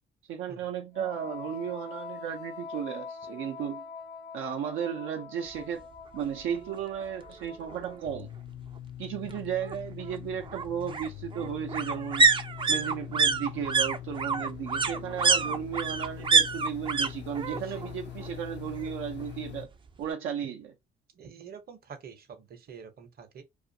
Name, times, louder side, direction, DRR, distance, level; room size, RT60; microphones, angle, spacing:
voice 1, 0.3-3.8 4.3-5.9 6.1-8.3 9.0-12.3 12.7-19.7 20.0-20.7, right 8 dB, 90° right, 0.5 m, -34 dB
Wind instrument woodwind instrument, 0.9-8.3, left 5 dB, 90° left, 0.9 m, -44 dB
sound 1, 6.2-6.3 6.7-6.8 7.0-8.0 9.3-17.1 17.3-17.9 18.2-19.2 19.5-19.6, right 4 dB, 25° right, 0.3 m, -27 dB
sound 2, 8.0-19.7, left 11 dB, 60° left, 0.4 m, -43 dB
voice 2, 17.4-17.8 21.2-23.4, right 6 dB, 50° right, 0.8 m, -46 dB
2.5 x 2.4 x 2.7 m
cardioid pair, 90°, 20 cm